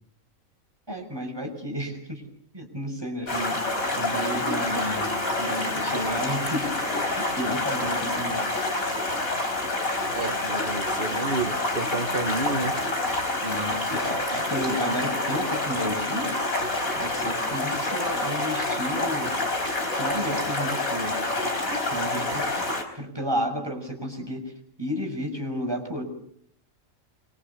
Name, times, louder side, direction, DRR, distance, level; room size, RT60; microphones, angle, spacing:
voice 1, 0.9-2.2 2.5-3.6 3.9-6.7 7.1-8.5 13.4-19.4 20.0-21.2 21.9-22.7 22.9-24.5 24.8-26.1, equal, 15° right, 6.2 m, -32 dB
Stream, 3.3-22.8, left 2 dB, 85° left, 4.9 m, -27 dB
voice 2, 10.1-12.8, right 3 dB, 40° right, 1.8 m, -30 dB
26.0 x 24.0 x 6.9 m
omnidirectional pair, 1.4 m